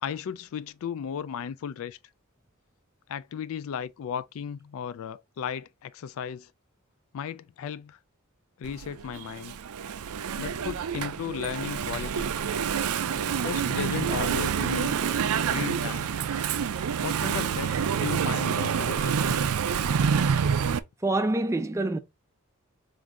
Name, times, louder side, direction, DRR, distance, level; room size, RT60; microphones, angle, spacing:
voice 1, 0.0-2.0 3.1-6.5 7.1-8.0 8.6-9.6 10.4-12.3 13.4-15.0 15.5-16.1 17.0-17.7 18.0-19.4, left 7 dB, 65° left, 0.3 m, -35 dB
Engine / Mechanisms, 8.6-20.8, right 7 dB, 80° right, 0.4 m, -27 dB
voice 2, 21.0-22.0, right 2 dB, 15° right, 0.4 m, -26 dB
3.8 x 2.6 x 4.5 m
head